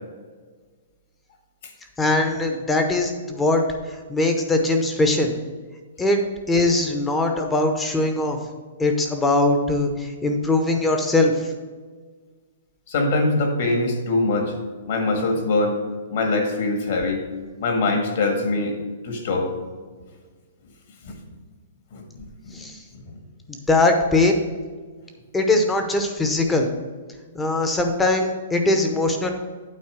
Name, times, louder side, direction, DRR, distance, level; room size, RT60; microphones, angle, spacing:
voice 1, 2.0-3.6 4.1-5.3 6.0-6.2 6.5-8.4 8.8-11.5 22.5-22.8 23.5-24.4 25.3-26.7 27.3-29.3, left 2 dB, 10° left, 4 dB, 0.8 m, -21 dB
voice 2, 12.9-14.5 14.9-15.8 16.1-17.2 17.6-18.8 19.0-19.5 21.0-21.1 21.9-22.0 22.5-22.6, left 2 dB, 55° left, 3 dB, 1.8 m, -22 dB
8.6 x 4.2 x 6.7 m, 1.5 s
hypercardioid pair, 165°, 0 cm